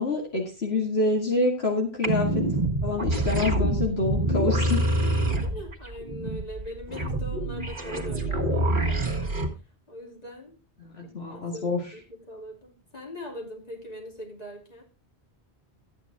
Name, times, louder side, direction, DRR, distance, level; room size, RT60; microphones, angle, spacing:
voice 1, 0.0-2.4 2.8-4.8 10.8-11.8, left 2 dB, 70° left, 0 dB, 2.2 m, -27 dB
sound 1, 2.0-9.5, right 1 dB, 50° right, 1.9 m, -26 dB
voice 2, 5.0-9.4 9.9-10.6 11.0-14.8, equal, 35° left, 1 dB, 3.0 m, -41 dB
13.0 x 9.1 x 3.5 m, 0.30 s
omnidirectional pair, 1.1 m